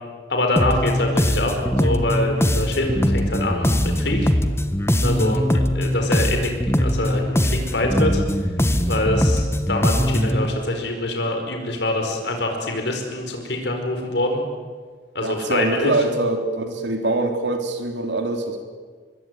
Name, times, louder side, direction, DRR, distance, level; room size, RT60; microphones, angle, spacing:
voice 1, 0.3-4.3 5.0-8.2 8.9-14.4 15.1-15.9, left 1 dB, 70° left, 4 dB, 4.8 m, -25 dB
sound 1, 0.6-10.5, equal, 15° left, 1.5 m, -21 dB
voice 2, 15.2-18.6, right 2 dB, 80° right, 5 dB, 3.7 m, -24 dB
25.5 x 22.5 x 9.4 m, 1.5 s
head